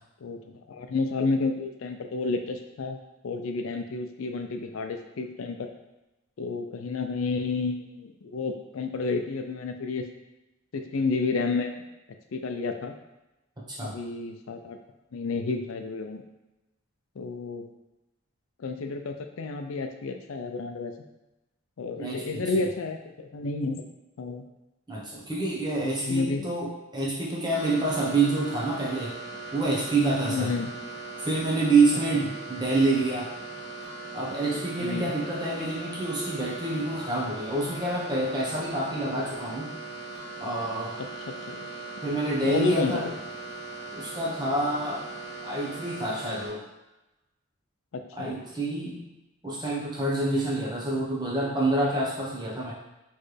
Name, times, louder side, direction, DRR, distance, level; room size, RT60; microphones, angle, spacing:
voice 1, 0.2-3.0 3.2-5.7 6.4-10.1 10.7-11.8 12.3-12.9 13.8-14.8 15.1-16.2 17.2-17.7 18.6-20.9 21.8-23.8 24.2-24.4 25.8-26.4 30.3-30.7 34.8-35.1 41.3-41.7 42.4-43.2 47.9-48.3, left 3 dB, 80° left, 6 dB, 0.4 m, -30 dB
voice 2, 22.0-22.7 24.9-29.1 29.5-30.5 31.2-33.3 34.1-39.7 40.4-41.0 42.0-43.0 43.9-45.1 45.4-46.6 48.2-49.1 49.4-52.7, right 2 dB, 20° right, -5 dB, 0.9 m, -27 dB
sound 1, 27.5-46.5, right 3 dB, 45° left, 1.3 m, -39 dB
4.3 x 3.2 x 3.2 m, 0.99 s
head